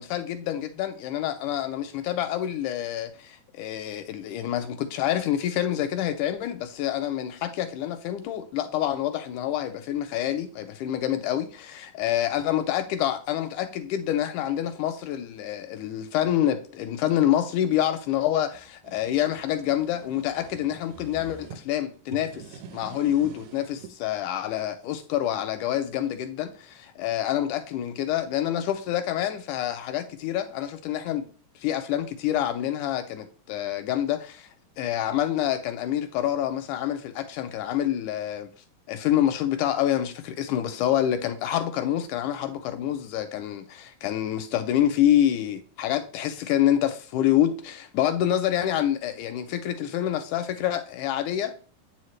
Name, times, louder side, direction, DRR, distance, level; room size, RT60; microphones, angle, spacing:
voice 1, 0.0-31.3 31.6-34.5 34.8-38.5 38.9-51.5, left 11 dB, 80° left, 1.9 m, -27 dB
sound 1, 18.5-21.6 22.0-23.9, right 6 dB, 75° right, 1.8 m, -46 dB
8.3 x 4.9 x 3.2 m
omnidirectional pair, 4.0 m